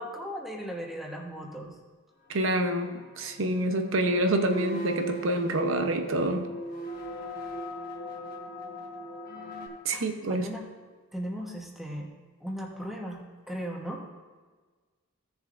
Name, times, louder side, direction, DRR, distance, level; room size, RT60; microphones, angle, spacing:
voice 1, 0.0-1.7 9.9-10.7 11.1-12.1 12.4-13.2 13.5-14.0, equal, ahead, -1 dB, 1.1 m, -37 dB
voice 2, 2.3-6.5 9.8-10.5, right 1 dB, 65° right, 6 dB, 0.8 m, -27 dB
sound 1, 2.4-9.7, equal, 40° left, 1.4 m, -38 dB
16.0 x 6.9 x 2.5 m, 1.4 s
head